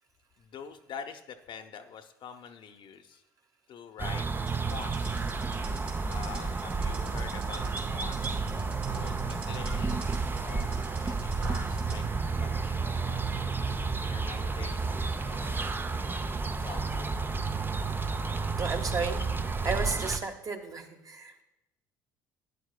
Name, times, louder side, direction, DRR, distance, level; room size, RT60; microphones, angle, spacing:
voice 1, 0.4-3.2 3.7-4.2 4.7-5.3 6.1-8.4 8.9-10.1 10.4-12.0 12.4-14.9 15.2-15.6 16.6-17.1, left 7 dB, 50° left, 6 dB, 0.8 m, -45 dB
sound 1, 4.0-20.2, right 4 dB, 20° right, 0.5 m, -31 dB
sound 2, 4.5-12.0, right 5 dB, 65° right, 2.5 m, -48 dB
voice 2, 18.6-21.4, right 4 dB, 35° right, 4 dB, 1.2 m, -34 dB
12.0 x 9.4 x 2.2 m, 0.92 s
hypercardioid pair, 65°, 11 cm